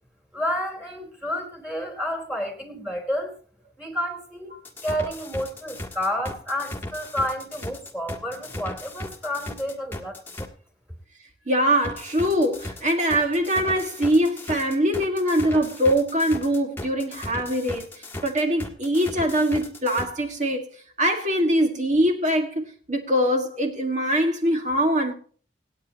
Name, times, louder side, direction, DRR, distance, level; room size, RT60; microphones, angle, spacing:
voice 1, 0.3-3.3 3.8-4.5 4.8-10.2, equal, 5° right, 2.8 m, -30 dB
sound 1, 4.6-10.5 11.8-20.1, left 1 dB, 10° left, 1.6 m, -36 dB
voice 2, 11.5-20.6 21.0-25.1, equal, 40° right, 1.7 m, -23 dB
26.0 x 8.6 x 2.9 m
head